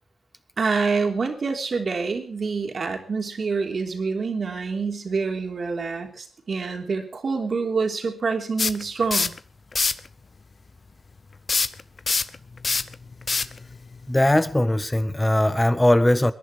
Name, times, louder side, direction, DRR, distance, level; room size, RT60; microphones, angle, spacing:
voice 1, 0.6-9.3, right 4 dB, 55° right, 3.4 m, -26 dB
sound 1, 8.6-9.4 9.7-10.1 11.5-14.5, left 4 dB, 50° left, 0.8 m, -25 dB
voice 2, 14.1-16.3, left 1 dB, 15° left, 1.4 m, -20 dB
21.5 x 11.0 x 4.9 m
cardioid pair, 55°, 0 cm